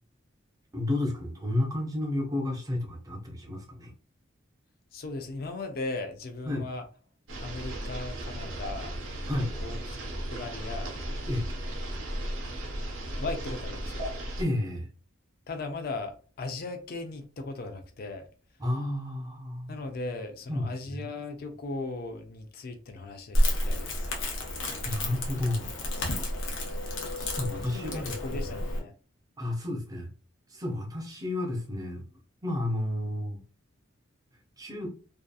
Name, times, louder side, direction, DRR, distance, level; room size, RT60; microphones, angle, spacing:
voice 1, 0.7-3.9 6.5-6.7 9.3-9.5 11.3-11.5 14.4-14.9 18.6-19.7 20.5-21.1 24.8-25.7 27.2-28.4 29.4-30.1 30.5-32.0 32.4-33.4 34.6-34.9, left 1 dB, 20° right, 0.5 m, -31 dB
voice 2, 4.9-6.9 7.4-8.9 9.6-10.0 10.3-10.9 13.2-14.1 15.5-18.3 19.7-24.1 27.6-28.9, left 3 dB, 45° left, 0.4 m, -37 dB
sound 1, 7.3-14.4, right 1 dB, 65° right, 0.7 m, -35 dB
Crackle, 23.3-28.8, left 1 dB, 70° left, 0.7 m, -30 dB
2.6 x 2.4 x 2.3 m
head